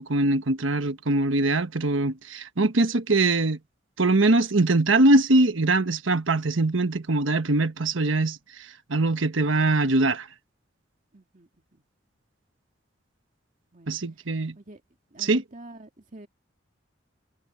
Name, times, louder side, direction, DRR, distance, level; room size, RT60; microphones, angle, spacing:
voice 1, 0.0-3.6 4.0-10.3 13.9-14.5 15.2-15.4, right 2 dB, 90° right, 1.3 m, -22 dB
voice 2, 11.1-11.8 13.7-14.0 14.5-14.8 15.1-16.3, right 1 dB, 40° right, 2.3 m, -47 dB
head